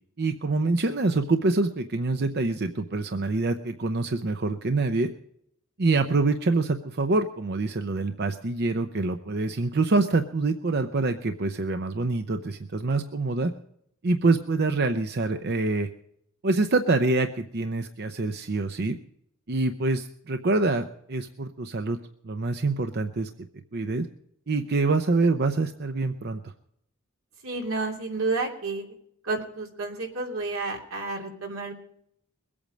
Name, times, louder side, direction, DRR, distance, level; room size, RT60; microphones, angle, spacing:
voice 1, 0.2-5.1 5.8-13.5 14.0-15.9 16.4-19.0 19.5-22.0 22.2-23.3 23.7-24.1 24.5-26.5, right 3 dB, 50° right, 7 dB, 0.7 m, -25 dB
voice 2, 27.4-28.9 29.2-31.7, right 3 dB, 85° right, 1 dB, 2.9 m, -30 dB
22.0 x 8.7 x 5.1 m, 0.72 s
head